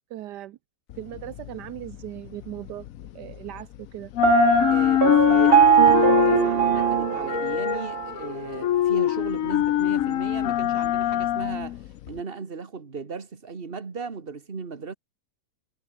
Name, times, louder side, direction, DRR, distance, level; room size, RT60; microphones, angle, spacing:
voice 1, 0.1-0.6 1.0-2.9 3.1-4.1, right 13 dB, 80° right, 1.3 m, -38 dB
sound 1, 0.9-3.8 4.0-12.2, left 12 dB, 65° left, 1.0 m, -24 dB
Piano, 4.2-8.1, right 9 dB, 60° right, 0.6 m, -20 dB
voice 2, 4.7-11.8 12.1-14.9, right 5 dB, 35° right, 2.0 m, -36 dB
omnidirectional pair, 1.8 m